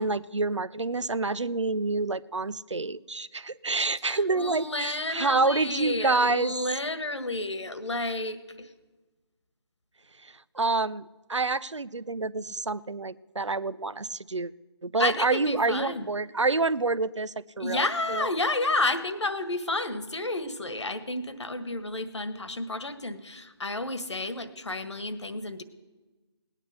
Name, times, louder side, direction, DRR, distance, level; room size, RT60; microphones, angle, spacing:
voice 1, 0.0-6.5 10.2-14.5 14.8-18.3, right 3 dB, 90° right, 19 dB, 0.6 m, -28 dB
voice 2, 4.0-8.7 15.0-16.1 17.6-25.6, left 2 dB, 75° left, 12 dB, 1.5 m, -31 dB
18.5 x 9.9 x 6.7 m, 1.2 s
figure-of-eight pair, 150°, 15 cm